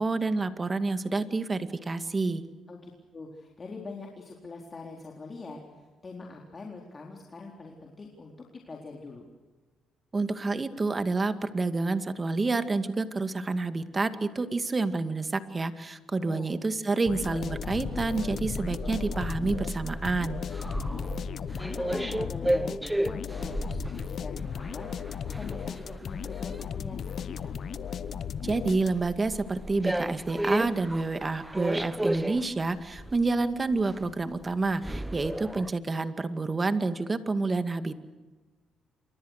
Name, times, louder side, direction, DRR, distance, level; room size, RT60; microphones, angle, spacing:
voice 1, 0.0-2.4 10.1-20.4 28.4-37.9, right 3 dB, 30° right, 10 dB, 2.2 m, -28 dB
voice 2, 2.7-9.3 16.1-16.5 20.7-27.5, left 3 dB, 30° left, 0 dB, 4.0 m, -44 dB
sound 1, 17.1-29.2, left 8 dB, 60° left, 0.9 m, -36 dB
sound 2, 17.2-35.7, right 1 dB, 10° right, 1.0 m, -34 dB
28.0 x 25.0 x 6.6 m, 1.3 s
cardioid pair, 90°, 0 cm